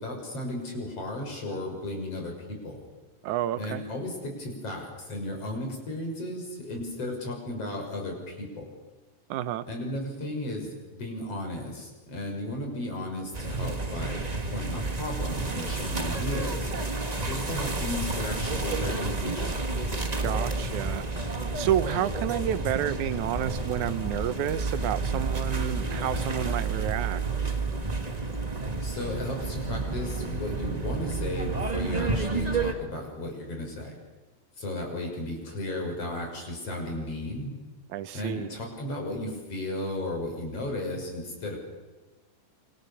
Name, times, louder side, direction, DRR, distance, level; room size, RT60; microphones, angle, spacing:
voice 1, 0.0-2.8 3.6-8.6 9.7-14.2 14.5-16.7 17.2-19.5 28.8-33.9 34.6-37.5 38.1-41.6, left 1 dB, 50° left, 1 dB, 7.4 m, -34 dB
voice 2, 3.2-3.8 9.3-9.7 20.2-21.0 21.6-27.2 37.9-38.5, right 11 dB, 75° right, 13 dB, 2.3 m, -30 dB
sound 1, 13.3-32.7, right 3 dB, 30° right, 0.7 m, -30 dB
27.5 x 26.0 x 7.1 m, 1.2 s
omnidirectional pair, 3.6 m